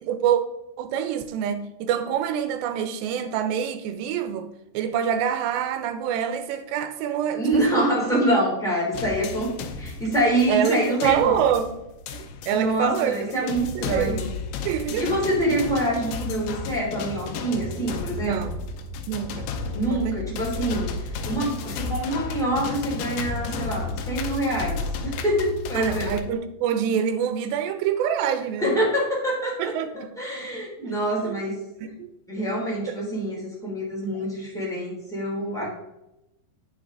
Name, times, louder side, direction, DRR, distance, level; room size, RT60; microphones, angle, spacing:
voice 1, 0.0-0.4 0.8-4.5 4.7-7.9 10.5-11.7 12.1-13.1 13.4-14.2 14.7-15.1 18.2-18.6 19.1-19.5 19.9-20.2 25.7-28.7 29.6-30.1 30.8-30.9 31.2-31.4 32.0-32.1 32.9-33.0, right 9 dB, 85° right, 2.9 m, -26 dB
voice 2, 7.3-9.5 9.8-11.4 12.5-14.3 15.0-18.4 19.7-20.9 21.2-26.1 28.6-29.7 30.0-31.6 32.3-35.7, right 1 dB, ahead, 2.3 m, -25 dB
sound 1, 8.9-26.2, left 4 dB, 80° left, 2.7 m, -33 dB
8.9 x 6.2 x 3.9 m
omnidirectional pair, 4.8 m